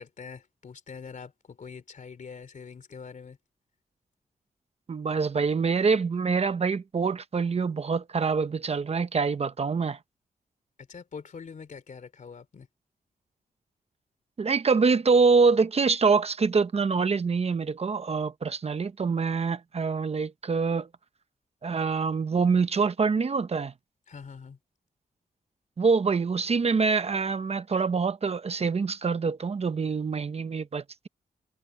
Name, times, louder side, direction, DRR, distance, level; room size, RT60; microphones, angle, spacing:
voice 1, 0.0-3.4 10.8-12.7 24.1-24.6, left 5 dB, 60° left, 3.3 m, -44 dB
voice 2, 4.9-10.0 14.4-20.9 21.6-23.7 25.8-31.1, right 5 dB, 45° right, 0.9 m, -25 dB
wide cardioid pair, 100°, 15 cm